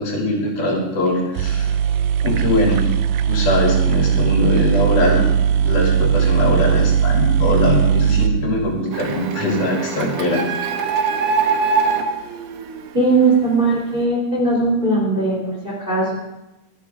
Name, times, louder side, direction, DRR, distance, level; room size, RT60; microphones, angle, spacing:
voice 1, 0.0-1.7 2.2-2.9 3.3-5.2 5.6-10.5, left 1 dB, 65° left, -2 dB, 4.7 m, -21 dB
sound 1, 1.1-1.2 1.3-9.2, right 8 dB, 80° right, 1.7 m, -18 dB
Printer, 8.9-13.5, right 5 dB, 65° right, 1.8 m, -23 dB
voice 2, 12.9-16.1, right 3 dB, 15° right, -3 dB, 3.4 m, -19 dB
24.5 x 9.9 x 3.6 m, 0.94 s
omnidirectional pair, 3.9 m